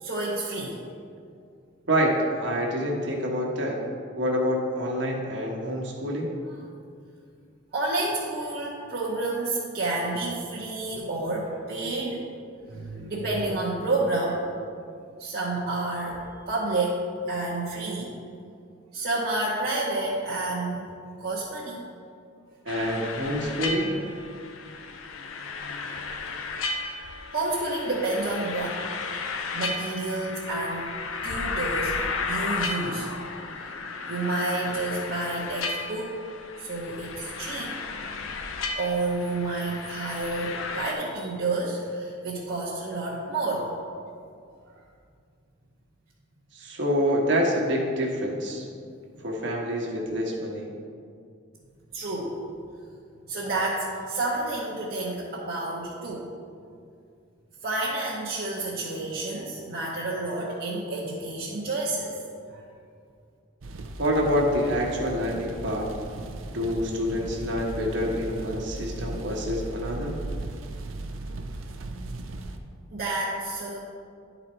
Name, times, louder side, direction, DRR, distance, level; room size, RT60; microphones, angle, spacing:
voice 1, 0.0-0.8 7.7-12.3 12.7-14.5 15.2-16.2 16.5-18.1 18.9-20.9 21.2-21.8 27.3-28.8 29.5-31.0 31.2-33.1 34.1-36.1 36.6-37.8 38.7-43.7 51.9-52.6 53.3-56.3 57.6-62.2 62.5-62.6 72.9-73.8, right 2 dB, 50° right, -6 dB, 0.9 m, -29 dB
voice 2, 1.9-3.8 4.2-6.3 22.6-23.9 46.5-48.6 49.2-50.7 64.0-65.8 66.5-70.2, equal, 65° right, -2 dB, 1.2 m, -27 dB
sound 1, 22.7-40.9, left 4 dB, 85° left, 0.6 m, -34 dB
sound 2, 63.6-72.6, right 2 dB, 85° right, 0.6 m, -37 dB
11.0 x 4.0 x 4.4 m, 2.3 s
head